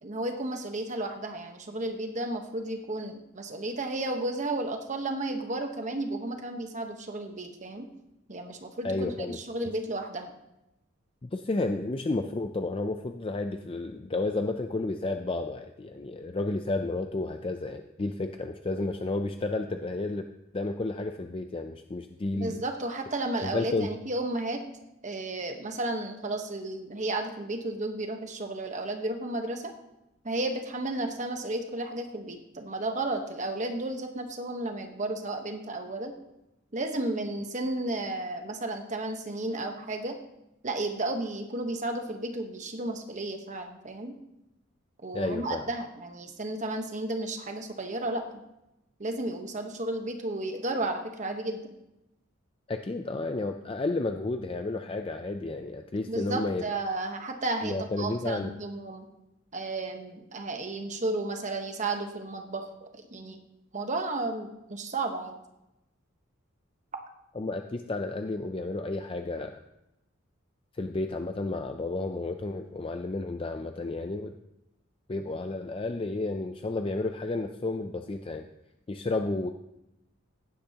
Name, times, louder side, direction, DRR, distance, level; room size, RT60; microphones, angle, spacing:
voice 1, 0.0-7.9 8.3-10.3 22.3-24.6 25.0-29.7 30.2-36.1 36.7-40.2 40.6-44.2 45.0-48.4 49.0-51.7 56.1-59.1 59.5-63.4 63.7-65.3, right 2 dB, 35° right, 4 dB, 1.2 m, -33 dB
voice 2, 8.8-9.4 11.2-20.3 20.5-22.6 23.4-23.9 45.1-45.7 52.7-56.7 57.6-58.5 67.4-69.6 70.7-74.3 75.1-78.5 78.9-79.5, left 2 dB, 25° left, 6 dB, 0.4 m, -31 dB
15.5 x 10.5 x 2.9 m, 0.89 s
head